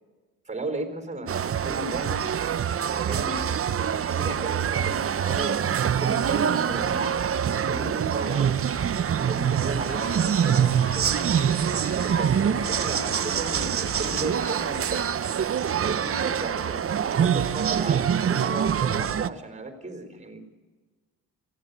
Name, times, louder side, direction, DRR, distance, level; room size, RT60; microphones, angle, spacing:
voice 1, 0.5-2.3 2.8-3.6 4.0-7.2 7.7-8.6 9.2-11.2 12.0-15.1 15.8-16.8 17.1-20.4, right 2 dB, 20° right, 7 dB, 4.2 m, -35 dB
sound 1, 1.3-19.3, right 8 dB, 40° right, 0.7 m, -25 dB
sound 2, 9.9-15.0, left 3 dB, 45° left, 2.4 m, -41 dB
22.5 x 16.5 x 8.1 m, 1.3 s
cardioid pair, 80°, 35 cm